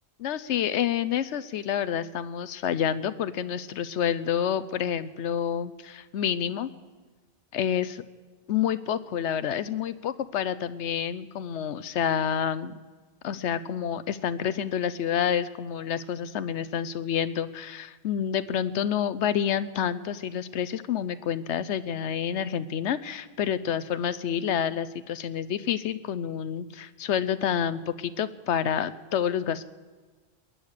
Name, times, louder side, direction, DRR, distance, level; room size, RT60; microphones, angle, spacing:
voice 1, 0.2-6.7 7.5-8.0 8.5-12.8 13.2-29.6, left 9 dB, 80° left, 14 dB, 1.0 m, -28 dB
20.5 x 10.5 x 6.6 m, 1.4 s
omnidirectional pair, 1.2 m